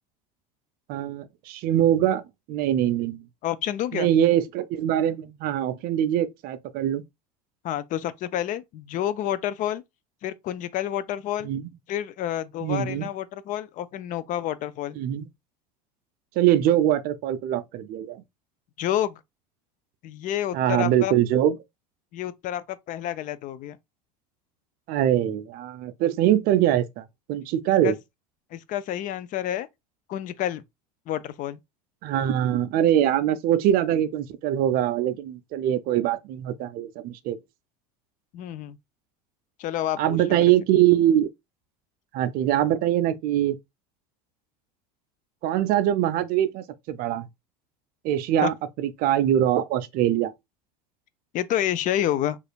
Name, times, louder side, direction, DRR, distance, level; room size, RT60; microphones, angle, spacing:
voice 1, 0.9-2.2 2.5-3.3 3.9-7.0 11.4-11.7 12.6-13.1 15.0-15.3 16.4-18.2 20.5-21.5 24.9-28.0 32.0-37.4 40.0-41.3 42.1-43.6 45.4-47.3 48.0-50.3, right 11 dB, 50° right, 0.4 m, -23 dB
voice 2, 3.4-4.1 7.6-9.8 10.2-11.5 11.9-15.0 18.8-19.2 20.0-21.1 22.1-23.8 27.8-27.9 28.5-29.7 30.1-30.6 31.1-31.6 38.3-38.8 39.6-40.4 48.4-48.5 51.3-52.4, left 12 dB, 40° left, 0.4 m, -29 dB
4.8 x 2.4 x 2.3 m
hypercardioid pair, 75°, 20 cm